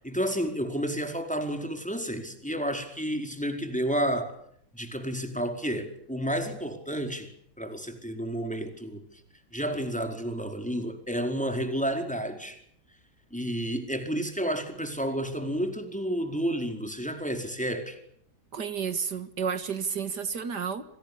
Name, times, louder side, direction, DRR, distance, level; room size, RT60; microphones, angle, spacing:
voice 1, 0.0-4.3 4.7-7.3 7.6-9.0 9.5-12.6 13.3-18.0, equal, 5° left, 5 dB, 4.6 m, -31 dB
voice 2, 18.5-20.8, right 6 dB, 75° right, 11 dB, 2.4 m, -31 dB
28.0 x 26.0 x 7.0 m, 0.68 s
omnidirectional pair, 1.8 m